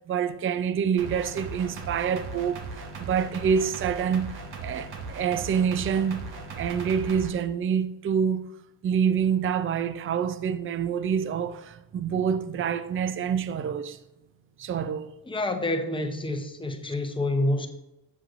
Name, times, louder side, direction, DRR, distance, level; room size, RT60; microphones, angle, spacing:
voice 1, 0.1-6.3 6.6-8.5 8.8-14.0 14.6-15.1, right 7 dB, 30° right, 0.4 m, -27 dB
sound 1, 1.0-7.3, right 3 dB, 60° right, 1.4 m, -38 dB
voice 2, 15.2-17.7, left 1 dB, 10° left, 0.7 m, -28 dB
8.0 x 7.6 x 2.5 m
cardioid pair, 135°, 42 cm